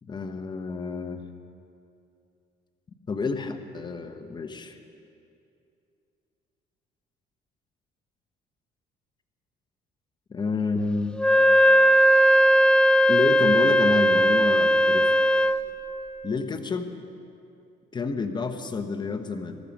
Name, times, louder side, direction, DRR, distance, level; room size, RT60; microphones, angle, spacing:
voice 1, 0.1-1.2 3.1-4.8 10.3-11.2 13.1-15.1 16.2-16.9 17.9-19.6, left 4 dB, 25° left, 7 dB, 0.9 m, -29 dB
Wind instrument woodwind instrument, 11.2-15.7, equal, 5° left, 0.5 m, -18 dB
14.5 x 13.5 x 5.3 m, 2.7 s
cardioid pair, 110°, 17 cm